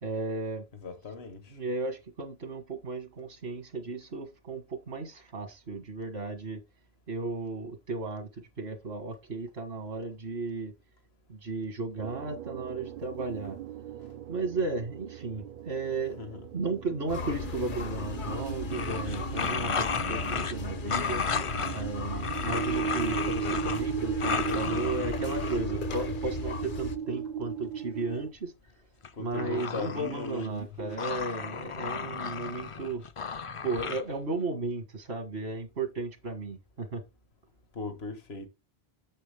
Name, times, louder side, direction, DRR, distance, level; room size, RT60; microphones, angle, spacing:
voice 1, 0.0-0.6 1.5-6.6 7.1-8.3 8.6-10.7 11.3-13.6 14.3-21.2 21.7-28.5 29.2-33.0 33.6-37.0, right 3 dB, 80° right, 1.8 m, -35 dB
voice 2, 0.8-1.6 14.0-14.1 16.2-16.4 24.3-25.0 25.3-25.7 29.1-30.4 37.7-38.5, left 3 dB, 75° left, 1.7 m, -38 dB
sound 1, 12.0-28.3, right 8 dB, 60° right, 0.6 m, -37 dB
sound 2, 17.1-27.0, left 4 dB, 55° left, 0.9 m, -36 dB
sound 3, 18.7-20.5 20.9-21.8 22.2-23.9 24.2-25.6 29.0-30.6 30.9-34.0, left 5 dB, 40° left, 0.5 m, -34 dB
7.7 x 7.1 x 3.4 m
omnidirectional pair, 1.1 m